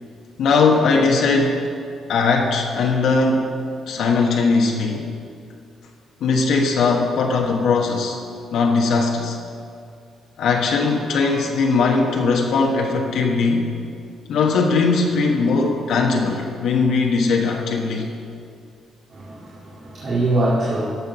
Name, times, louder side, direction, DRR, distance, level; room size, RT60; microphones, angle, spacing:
voice 1, 0.4-1.7 2.1-3.5 3.9-5.1 6.2-8.2 8.5-9.4 10.4-13.6 14.3-18.1, left 4 dB, 75° left, 0 dB, 1.1 m, -19 dB
voice 2, 19.1-20.9, right 1 dB, 50° right, -6 dB, 2.0 m, -23 dB
12.5 x 5.8 x 5.9 m, 2.3 s
cardioid pair, 90°, 0 cm